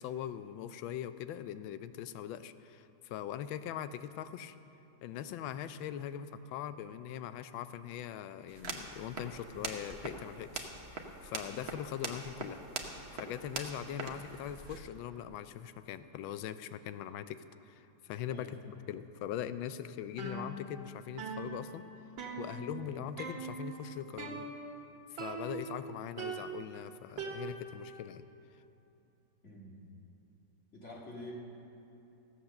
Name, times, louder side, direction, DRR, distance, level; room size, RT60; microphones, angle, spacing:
voice 1, 0.0-4.5 5.0-12.6 13.1-21.8 22.4-24.5 25.1-28.2, left 10 dB, 85° left, 13 dB, 1.3 m, -41 dB
sound 1, 8.5-14.8, right 4 dB, 45° right, 1.0 m, -43 dB
sound 2, 20.2-20.9 21.2-22.9 23.2-23.7 24.2-24.8 25.2-25.8 26.2-27.9, right 4 dB, 75° right, 2.1 m, -42 dB
voice 2, 29.4-29.9 30.7-31.3, left 1 dB, 40° left, -4 dB, 2.1 m, -48 dB
15.5 x 8.1 x 6.5 m, 2.9 s
omnidirectional pair, 2.1 m